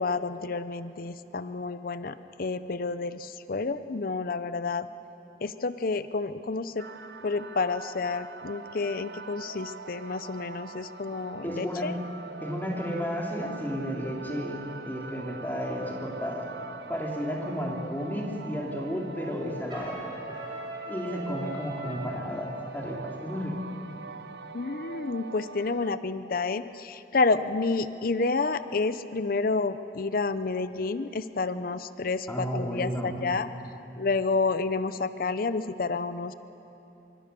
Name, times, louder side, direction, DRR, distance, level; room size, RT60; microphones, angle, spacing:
voice 1, 0.0-4.9 5.4-6.9 7.2-11.9 24.5-33.5 34.0-36.3, left 3 dB, 55° left, 13 dB, 0.6 m, -29 dB
sound 1, 6.8-25.9, right 4 dB, 70° right, 0.7 m, -43 dB
voice 2, 11.4-11.9 12.4-16.5 16.9-20.0 20.9-23.6 32.3-33.2, equal, 10° left, -1 dB, 3.2 m, -32 dB
Trumpet, 19.7-22.2, right 1 dB, 25° right, 5.8 m, -40 dB
25.0 x 24.5 x 6.9 m, 3.0 s
head